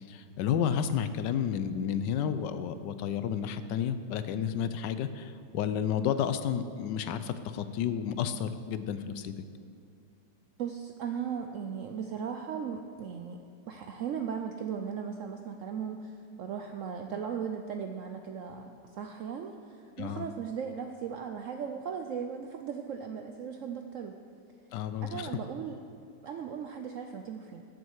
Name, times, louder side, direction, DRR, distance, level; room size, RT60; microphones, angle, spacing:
voice 1, 0.0-9.4 20.0-20.2 24.7-25.3, left 8 dB, 85° left, 11 dB, 1.3 m, -31 dB
voice 2, 10.6-13.4 13.7-24.2 25.0-25.8 26.2-27.6, right 7 dB, 75° right, 5 dB, 0.7 m, -37 dB
13.5 x 7.5 x 4.7 m, 2.4 s
omnidirectional pair, 1.9 m